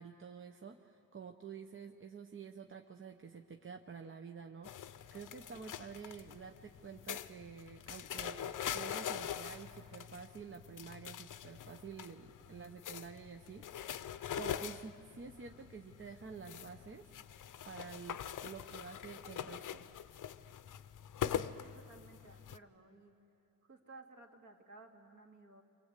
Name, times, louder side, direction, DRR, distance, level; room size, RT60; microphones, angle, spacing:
voice 1, 0.0-13.6 14.3-19.9, right 6 dB, 35° right, 5 dB, 0.9 m, -49 dB
sound 1, 4.6-22.6, left 9 dB, 60° left, 0.7 m, -43 dB
voice 2, 21.2-23.1 23.6-25.6, right 3 dB, 55° right, 2 dB, 2.6 m, -57 dB
30.0 x 24.0 x 8.3 m, 2.6 s
wide cardioid pair, 150°, 35 cm